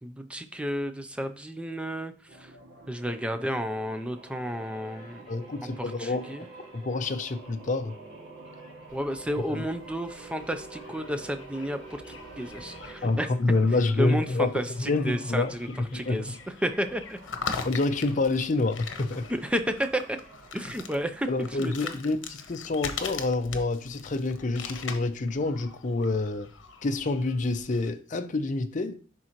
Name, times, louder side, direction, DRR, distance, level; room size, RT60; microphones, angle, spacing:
voice 1, 0.0-2.5 2.9-5.2 5.8-6.5 8.9-13.3 14.0-15.7 15.9-16.4 16.6-17.2 19.3-20.2 20.5-21.3 21.6-21.9, equal, 5° right, 0.5 m, -32 dB
sound 1, 2.3-14.0 14.6-21.8, right 3 dB, 60° right, 2.2 m, -48 dB
voice 2, 5.3-6.4 6.7-8.0 13.0-16.2 17.6-19.3 21.3-26.5 26.8-29.0, left 3 dB, 40° left, 0.5 m, -27 dB
sound 2, 8.9-27.9, left 5 dB, 80° left, 0.9 m, -42 dB
10.5 x 3.8 x 3.0 m
head